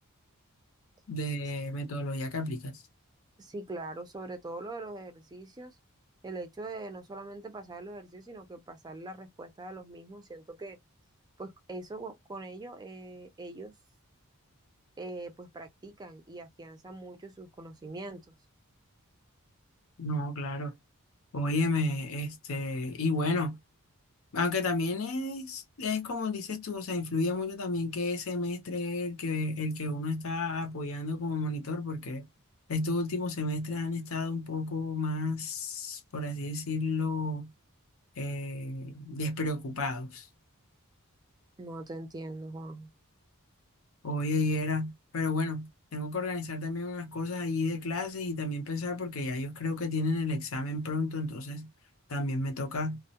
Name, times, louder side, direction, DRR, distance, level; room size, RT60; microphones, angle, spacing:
voice 1, 1.1-2.8 20.0-20.7 21.3-23.6 24.3-32.3 32.7-37.5 38.2-40.3 44.0-51.7 52.1-53.0, left 2 dB, 70° left, 0.7 m, -32 dB
voice 2, 3.4-5.8 6.2-10.8 11.4-13.7 15.0-18.4 41.6-42.9, right 2 dB, 20° right, 0.4 m, -42 dB
2.2 x 2.1 x 2.7 m
head